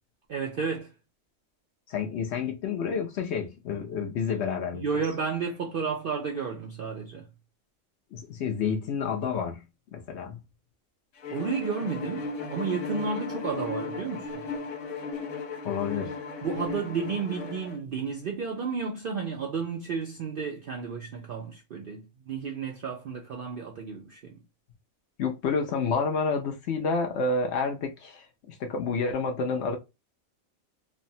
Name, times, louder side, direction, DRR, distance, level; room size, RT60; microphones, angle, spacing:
voice 1, 0.3-0.9 4.7-7.3 11.3-14.5 16.4-24.4, right 5 dB, 65° right, 0.5 m, -32 dB
voice 2, 1.9-4.8 8.1-9.6 9.9-10.4 15.6-16.2 25.2-29.8, left 5 dB, 65° left, 0.7 m, -29 dB
Bowed string instrument, 11.2-17.8, left 4 dB, 85° left, 1.1 m, -35 dB
3.3 x 2.0 x 2.6 m
omnidirectional pair, 1.4 m